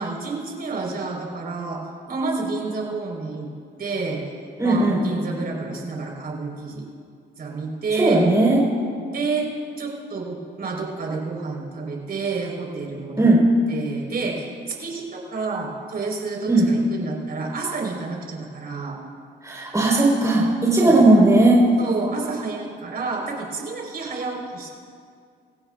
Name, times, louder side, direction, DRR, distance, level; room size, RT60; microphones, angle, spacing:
voice 1, 0.0-1.8 2.1-3.5 3.8-4.2 4.6-6.9 7.4-8.3 9.1-9.5 9.8-13.3 13.7-19.0 20.8-21.0 21.8-24.7, right 4 dB, 50° right, -1 dB, 4.4 m, -29 dB
voice 2, 4.6-5.0 7.9-8.6 13.2-13.4 16.5-16.7 19.4-21.6, right 2 dB, 15° right, -5 dB, 4.4 m, -17 dB
26.5 x 16.0 x 2.5 m, 2.2 s
cardioid pair, 90°, 20 cm